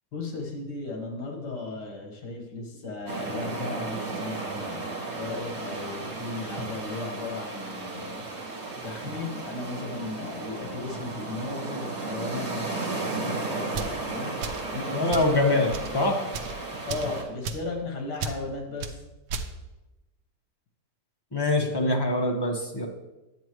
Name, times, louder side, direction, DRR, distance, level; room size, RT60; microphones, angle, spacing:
voice 1, 0.1-4.9 5.1-8.4 8.8-15.1 16.9-18.9, left 3 dB, 75° left, 1 dB, 2.2 m, -36 dB
sound 1, 3.1-17.2, right 3 dB, 55° right, 2.4 m, -34 dB
sound 2, 13.7-14.0 14.4-14.7 15.1-15.3 15.7-15.9 16.3-16.6 16.9-17.1 17.4-17.7 18.2-18.4 18.8-19.0 19.3-19.5, right 4 dB, 85° right, 1.3 m, -33 dB
voice 2, 14.9-15.7 15.9-16.1 21.3-22.9, left 2 dB, 20° left, 0 dB, 0.9 m, -24 dB
9.4 x 8.4 x 3.1 m, 1.0 s
omnidirectional pair, 1.8 m